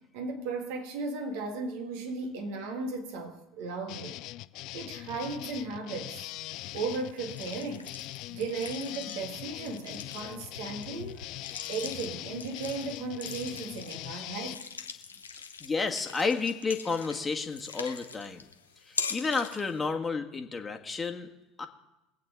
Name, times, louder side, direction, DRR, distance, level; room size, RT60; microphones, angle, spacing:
voice 1, 0.1-4.2 4.7-6.3 6.7-7.9 8.3-11.2 11.7-14.7, right 3 dB, 65° right, 2.0 m, -36 dB
sound 1, 3.9-14.6, left 17 dB, 55° left, 0.4 m, -41 dB
sound 2, 6.4-19.9, left 5 dB, 85° left, 0.8 m, -43 dB
voice 2, 15.6-18.4 18.9-21.3 21.6-21.7, left 4 dB, 20° left, 1.5 m, -31 dB
22.5 x 8.5 x 3.6 m
figure-of-eight pair, 70°, 0 cm